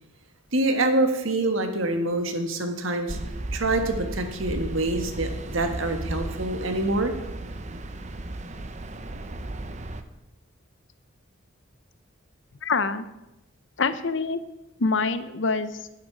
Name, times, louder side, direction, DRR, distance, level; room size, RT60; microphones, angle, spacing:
voice 1, 0.5-3.2 3.5-7.1, right 2 dB, 75° right, 6 dB, 1.5 m, -26 dB
sound 1, 3.1-10.0, right 1 dB, 35° right, 0.7 m, -35 dB
voice 2, 12.6-13.1 13.8-14.4 14.8-15.7, left 4 dB, 60° left, 13 dB, 0.7 m, -25 dB
9.3 x 8.2 x 7.5 m, 0.97 s
head